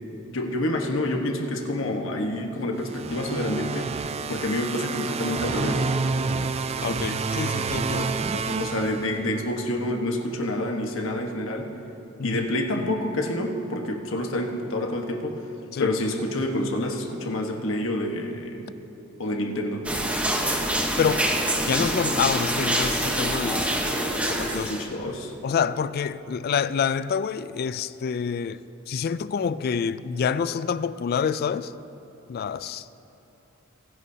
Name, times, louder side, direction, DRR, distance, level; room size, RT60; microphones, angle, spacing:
voice 1, 0.3-3.9 4.3-5.9 8.6-11.7 12.2-15.4 15.8-18.6 19.2-19.8 24.5-25.3, left 1 dB, 80° left, 1.3 m, -28 dB
sound 1, 2.8-9.5, right 4 dB, 30° right, 0.4 m, -29 dB
voice 2, 6.8-8.6 12.2-12.4 15.7-15.9 21.0-21.3 21.7-23.7 24.3-24.7 25.4-28.6 28.9-31.7 32.3-32.8, left 6 dB, 50° left, 0.3 m, -27 dB
sound 2, 19.8-24.9, right 1 dB, 5° right, 1.0 m, -25 dB
22.5 x 11.0 x 2.8 m
head